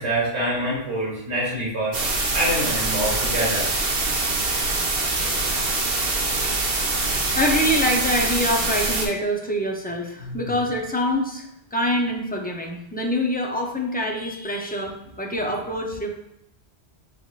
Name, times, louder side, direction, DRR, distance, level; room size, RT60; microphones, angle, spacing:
voice 1, 0.0-1.9 2.3-3.7 10.2-10.4, right 1 dB, 85° right, -5 dB, 1.8 m, -26 dB
sound 1, 1.9-9.1, right 2 dB, 65° right, 1.0 m, -24 dB
voice 2, 6.0-6.4 7.4-16.1, equal, 15° left, 0 dB, 0.4 m, -25 dB
6.0 x 3.6 x 2.4 m, 0.83 s
omnidirectional pair, 1.1 m